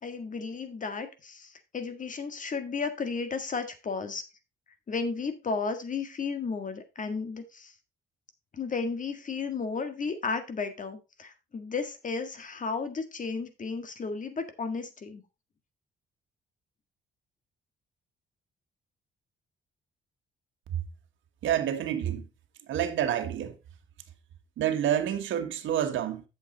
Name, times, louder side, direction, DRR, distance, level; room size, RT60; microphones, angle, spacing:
voice 1, 0.0-4.2 4.9-7.7 8.5-15.2, left 4 dB, 40° left, 1.8 m, -33 dB
voice 2, 21.4-22.3 22.7-23.6 24.6-26.2, right 10 dB, 75° right, 1.4 m, -28 dB
8.4 x 7.1 x 3.9 m
cardioid pair, 90°, 20 cm